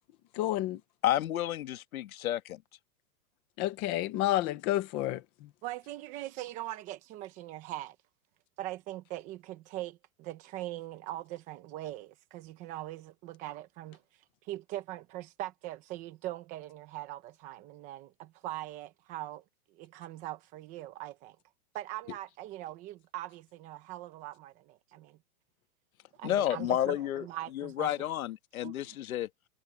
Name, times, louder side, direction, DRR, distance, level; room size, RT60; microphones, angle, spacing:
voice 1, 0.3-0.8 3.6-5.5, left 14 dB, 10° left, 0.6 m, -30 dB
voice 2, 1.0-2.6 26.2-27.3 27.6-29.3, left 12 dB, 65° left, 1.9 m, -31 dB
voice 3, 5.6-8.0 8.6-21.4 21.7-25.2 26.1-28.1 28.6-29.0, right 15 dB, 15° right, 0.9 m, -41 dB
supercardioid pair, 175°, 45 cm